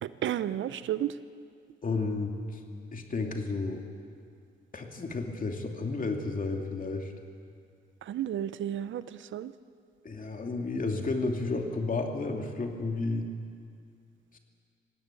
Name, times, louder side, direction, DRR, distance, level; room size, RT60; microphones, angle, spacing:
voice 1, 0.0-1.1 8.0-9.5, right 11 dB, 70° right, 14 dB, 0.7 m, -32 dB
voice 2, 1.8-2.6 2.9-3.8 4.7-7.1 10.0-13.3 14.3-14.4, left 3 dB, 40° left, 3 dB, 2.7 m, -32 dB
19.5 x 16.0 x 8.5 m, 2.2 s
cardioid pair, 70°, 20 cm